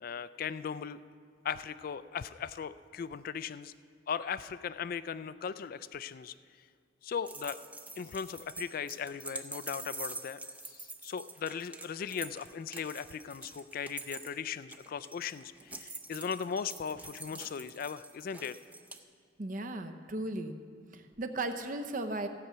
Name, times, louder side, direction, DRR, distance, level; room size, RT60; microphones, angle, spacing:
voice 1, 0.0-1.0 1.4-3.7 4.1-6.3 7.0-7.6 8.0-10.4 10.7-18.6, left 7 dB, 50° left, 15 dB, 0.3 m, -38 dB
sound 1, 7.3-19.0, right 2 dB, 10° right, 0.6 m, -45 dB
voice 2, 19.4-20.6 20.9-22.3, right 2 dB, 45° right, 8 dB, 0.7 m, -36 dB
15.5 x 5.7 x 7.9 m, 2.1 s
head